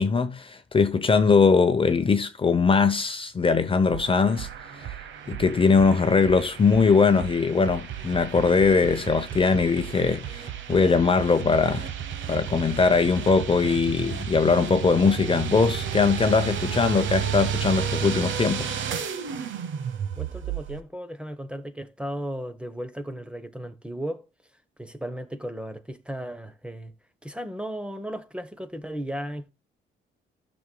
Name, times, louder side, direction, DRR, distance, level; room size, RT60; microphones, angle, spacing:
voice 1, 0.0-4.5 4.8-4.9 5.3-11.9 12.3-18.7, left 4 dB, 25° left, 0.7 m, -21 dB
sound 1, 3.9-20.8, right 8 dB, 70° right, 1.1 m, -32 dB
voice 2, 20.2-24.3 24.8-26.9 27.2-29.5, equal, 5° right, 1.0 m, -35 dB
15.0 x 6.2 x 2.2 m
cardioid pair, 90°, 20 cm